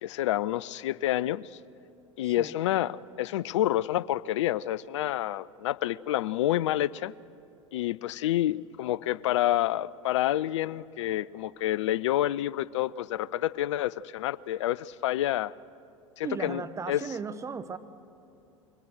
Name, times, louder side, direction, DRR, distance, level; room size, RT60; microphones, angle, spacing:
voice 1, 0.0-1.5 2.2-7.1 7.7-15.5 16.2-16.6 16.9-17.0, left 13 dB, 60° left, 22 dB, 0.4 m, -28 dB
voice 2, 2.2-2.5 16.2-17.8, right 5 dB, 15° right, 10 dB, 0.9 m, -36 dB
23.0 x 19.0 x 6.6 m, 2.6 s
figure-of-eight pair, 80°, 17 cm